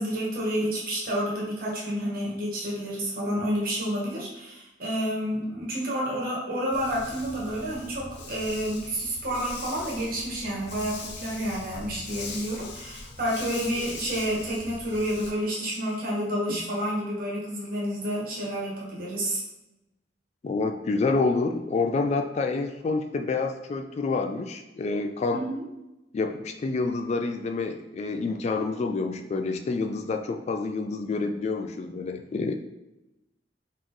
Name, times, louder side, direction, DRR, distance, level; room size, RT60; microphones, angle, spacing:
voice 1, 0.0-19.4 25.3-25.6, equal, 55° right, -4 dB, 1.4 m, -29 dB
Dog, 6.7-15.3, left 3 dB, 70° left, 0.7 m, -41 dB
voice 2, 20.4-25.4 26.1-32.6, left 3 dB, 40° left, 6 dB, 0.3 m, -28 dB
4.2 x 3.0 x 3.8 m, 0.96 s
head